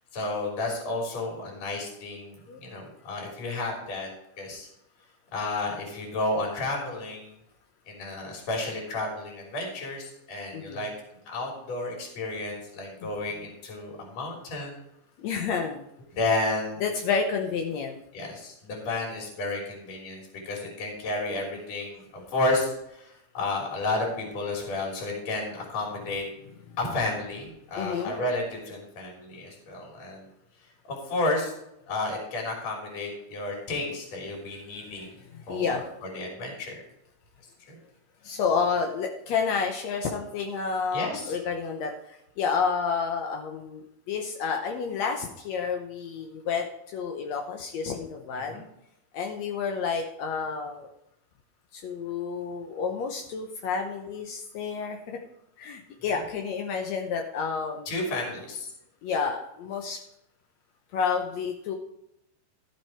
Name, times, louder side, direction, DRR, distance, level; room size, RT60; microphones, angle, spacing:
voice 1, 0.1-4.1 4.4-4.7 5.3-7.3 7.9-10.9 11.3-14.8 16.1-16.9 18.1-26.3 26.8-30.2 30.9-31.5 31.9-35.1 35.5-35.8 36.1-36.7 37.7-37.8 40.9-41.4 48.5-48.6 57.9-58.7, left 2 dB, 45° left, 0 dB, 4.2 m, -32 dB
voice 2, 10.5-10.8 13.0-13.1 15.2-15.8 16.8-18.0 27.8-28.1 34.7-35.1 35.5-35.8 38.2-48.7 49.1-50.9 51.7-55.2 55.6-57.9 59.0-60.0 60.9-61.7, left 5 dB, 80° left, 3 dB, 1.6 m, -30 dB
13.0 x 7.5 x 4.5 m, 0.81 s
omnidirectional pair, 4.4 m